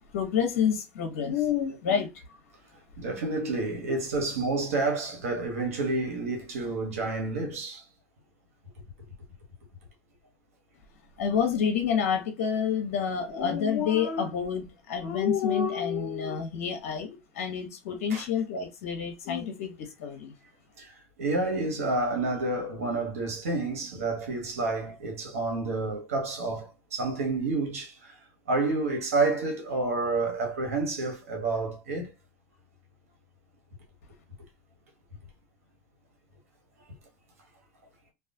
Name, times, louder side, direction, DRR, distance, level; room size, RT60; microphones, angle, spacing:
voice 1, 0.1-2.1 11.2-20.3, left 7 dB, 80° left, 0.7 m, -28 dB
voice 2, 3.0-7.8 18.1-18.2 20.8-20.9 21.2-28.2 28.5-32.1, right 3 dB, 90° right, 1.0 m, -29 dB
2.3 x 2.3 x 2.6 m
hypercardioid pair, 90°, 8 cm